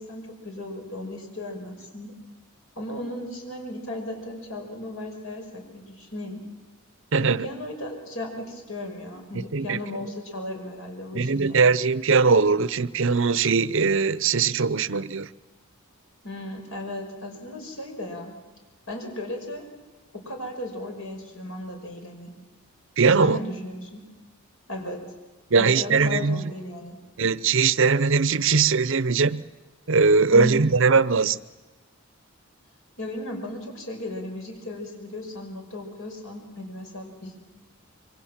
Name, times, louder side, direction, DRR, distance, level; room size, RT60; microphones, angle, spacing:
voice 1, 0.0-2.1 2.8-6.4 7.2-11.6 16.2-18.3 18.9-19.7 20.1-22.3 23.2-24.1 24.7-25.1 25.6-27.0 30.3-30.7 33.0-37.4, left 1 dB, 65° left, 5.7 m, -35 dB
voice 2, 7.1-7.5 9.3-9.8 11.1-15.3 23.0-23.4 25.5-26.4 27.2-29.4 29.9-31.4, right 4 dB, 60° right, 0.7 m, -20 dB
27.0 x 24.0 x 7.4 m
head